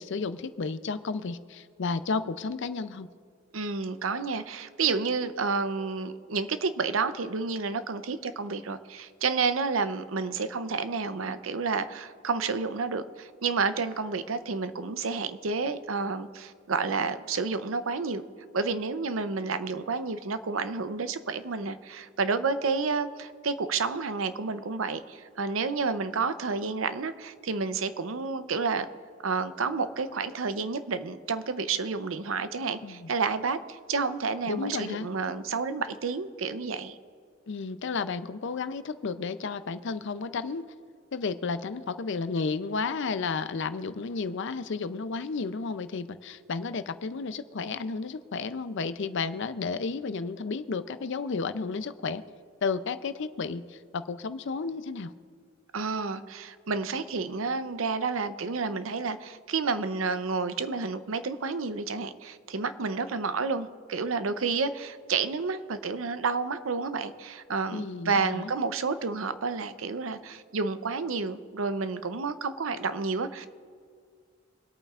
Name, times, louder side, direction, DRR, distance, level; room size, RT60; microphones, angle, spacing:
voice 1, 0.0-3.1 32.8-33.1 34.5-35.1 37.5-40.7 41.1-52.2 52.6-55.1 67.7-68.5, left 4 dB, 65° left, 12 dB, 0.5 m, -32 dB
voice 2, 3.5-18.2 18.5-28.9 29.2-36.9 55.7-73.5, right 4 dB, 85° right, 11 dB, 0.7 m, -30 dB
26.0 x 8.7 x 2.5 m, 2.2 s
head